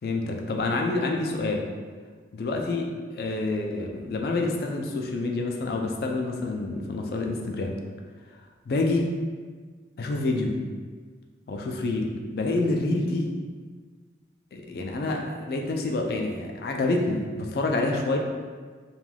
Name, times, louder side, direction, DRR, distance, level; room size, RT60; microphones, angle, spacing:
voice 1, 0.0-1.7 2.3-2.9 3.2-7.8 8.7-9.1 10.0-10.6 11.5-13.3 14.5-18.2, left 2 dB, 55° left, 1 dB, 0.3 m, -27 dB
3.2 x 2.3 x 2.2 m, 1.5 s
head